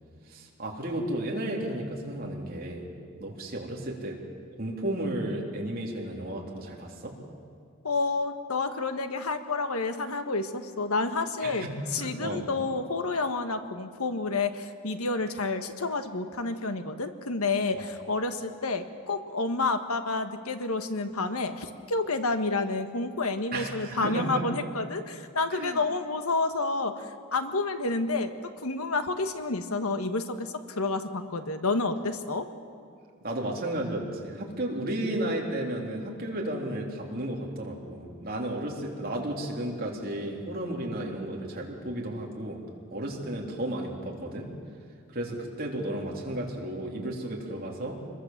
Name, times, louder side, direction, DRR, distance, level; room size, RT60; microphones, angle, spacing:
voice 1, 0.3-2.9 3.2-4.2 4.6-7.1 11.4-11.7 12.0-12.5 17.7-17.9 23.5-24.5 25.5-25.8 33.2-42.6 42.9-44.5 45.1-48.0, right 1 dB, 40° right, -1 dB, 3.5 m, -33 dB
voice 2, 7.8-11.7 11.9-28.3 28.6-32.5, left 3 dB, 90° left, 8 dB, 1.5 m, -29 dB
26.5 x 21.5 x 7.4 m, 2.2 s
head